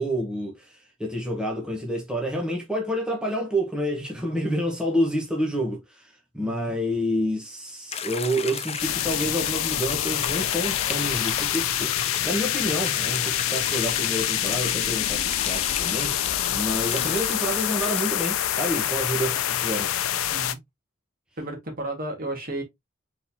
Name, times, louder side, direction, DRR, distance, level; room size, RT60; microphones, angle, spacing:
voice 1, 0.0-16.1 16.5-19.9, equal, 5° right, 1.1 m, -28 dB
voice 2, 6.4-6.7 18.9-19.0 20.3-20.6 21.4-22.6, right 1 dB, 45° right, 1.7 m, -33 dB
sound 1, 7.9-18.3, left 8 dB, 30° left, 0.4 m, -33 dB
sound 2, 8.8-20.5, left 11 dB, 90° left, 0.5 m, -26 dB
4.3 x 3.9 x 2.7 m
head